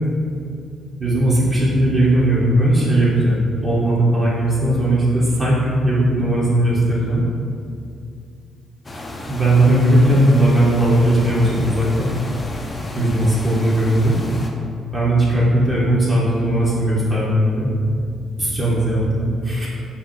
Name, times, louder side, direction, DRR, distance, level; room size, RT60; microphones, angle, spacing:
voice 1, 1.0-7.2 9.3-12.1 12.9-14.2 14.9-17.7 18.4-19.7, right 1 dB, 25° right, -7 dB, 1.3 m, -17 dB
sound 1, 8.8-14.5, left 1 dB, 25° left, 0.5 m, -32 dB
5.5 x 2.1 x 4.6 m, 2.4 s
cardioid pair, 90°, 0 cm